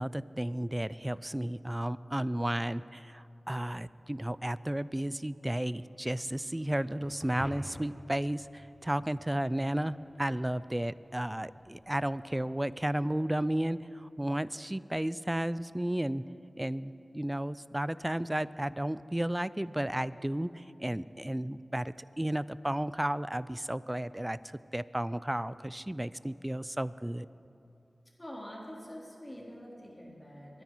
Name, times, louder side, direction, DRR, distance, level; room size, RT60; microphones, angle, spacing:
voice 1, 0.0-16.2 16.6-27.3, right 1 dB, 15° right, 17 dB, 0.4 m, -33 dB
sound 1, 5.5-13.7, equal, 50° right, 3.6 m, -52 dB
voice 2, 28.2-30.6, equal, 25° left, -3 dB, 3.3 m, -45 dB
23.5 x 9.5 x 4.6 m, 2.7 s
wide cardioid pair, 55°, 0 cm